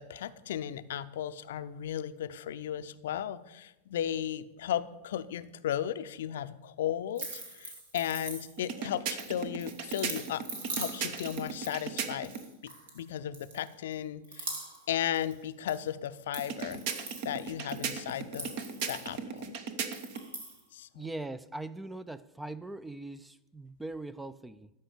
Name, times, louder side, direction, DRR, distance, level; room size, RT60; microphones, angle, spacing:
voice 1, 0.0-10.4 10.7-12.3 12.9-14.5 14.9-16.8 17.2-18.6 18.9-19.6 20.7-21.1, left 10 dB, 60° left, 0.6 m, -35 dB
sound 1, 7.1-8.8 9.2-13.0 13.3-13.9 14.2-15.8 16.1-19.4 19.8-20.6, right 3 dB, 65° right, 2.7 m, -43 dB
sound 2, 8.6-12.5 16.4-20.3, right 6 dB, 45° right, 1.1 m, -38 dB
voice 2, 20.9-24.7, right 2 dB, 5° right, 0.4 m, -41 dB
13.0 x 5.6 x 8.4 m
figure-of-eight pair, 90°, 0 cm